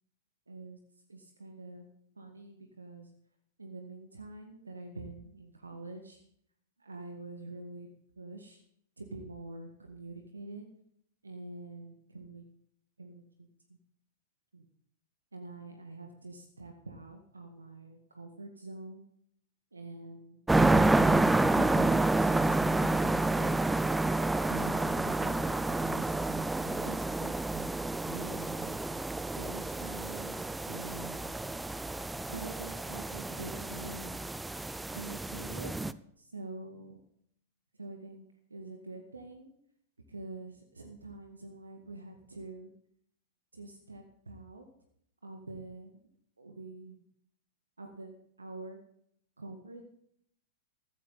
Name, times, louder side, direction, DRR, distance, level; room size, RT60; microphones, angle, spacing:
voice 1, 0.5-0.8 1.1-1.9 2.2-3.1 3.6-6.2 6.8-7.9 8.2-8.6 9.0-10.7 11.2-12.4 13.0-13.8 14.5-14.7 15.3-19.0 19.7-23.6 24.5-27.7 28.0-28.8 29.3-31.3 32.3-34.1 34.9-35.8 36.2-37.0 37.7-39.5 40.1-42.7 43.5-44.7 45.2-46.0 46.4-47.0 47.8-48.8 49.4-49.8, right 3 dB, 80° right, 4 dB, 1.8 m, -46 dB
sound 1, 20.5-35.9, right 2 dB, 5° right, 0.6 m, -29 dB
15.5 x 14.5 x 4.2 m, 0.69 s
figure-of-eight pair, 100°, 0 cm